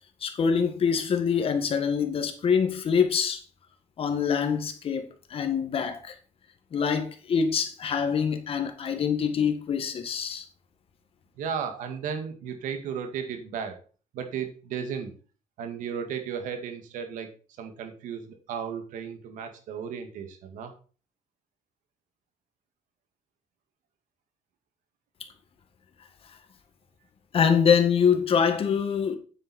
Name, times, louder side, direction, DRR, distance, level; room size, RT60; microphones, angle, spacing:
voice 1, 0.2-3.4 4.0-6.2 6.7-10.5 27.3-29.2, left 6 dB, 45° left, 1.9 m, -25 dB
voice 2, 11.4-13.8 14.1-15.1 15.6-17.3 17.6-20.7, right 7 dB, 80° right, 2.0 m, -34 dB
9.0 x 7.9 x 4.4 m
cardioid pair, 115°, 13 cm